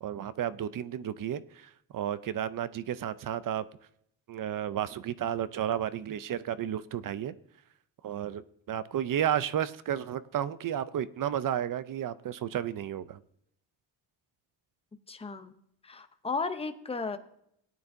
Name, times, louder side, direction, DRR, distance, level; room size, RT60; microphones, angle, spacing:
voice 1, 0.0-3.7 4.3-7.4 8.0-8.4 8.7-13.2, right 10 dB, 50° right, 16 dB, 0.5 m, -32 dB
voice 2, 15.1-15.6 15.8-17.2, left 4 dB, 15° left, 8 dB, 0.6 m, -34 dB
18.0 x 9.6 x 2.6 m, 0.73 s
wide cardioid pair, 155°, 44 cm